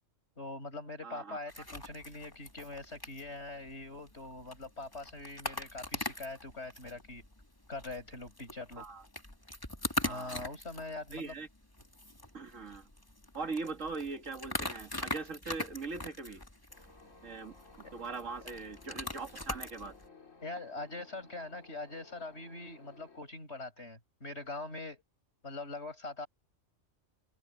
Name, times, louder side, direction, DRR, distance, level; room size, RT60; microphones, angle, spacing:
voice 1, 0.4-7.2 7.7-8.8 10.0-11.3 17.8-17.9 20.4-25.0 25.4-26.3, left 2 dB, 55° left, 6.6 m, -43 dB
voice 2, 1.0-1.4 8.8-9.0 10.0-10.4 11.1-11.5 12.3-12.9 13.3-16.4 17.2-17.5 17.9-19.9, right 4 dB, 75° right, 2.4 m, -41 dB
sound 1, 1.5-20.1, left 2 dB, 15° left, 2.5 m, -42 dB
sound 2, 16.7-23.2, left 4 dB, 80° left, 3.6 m, -58 dB
open air
omnidirectional pair, 1.3 m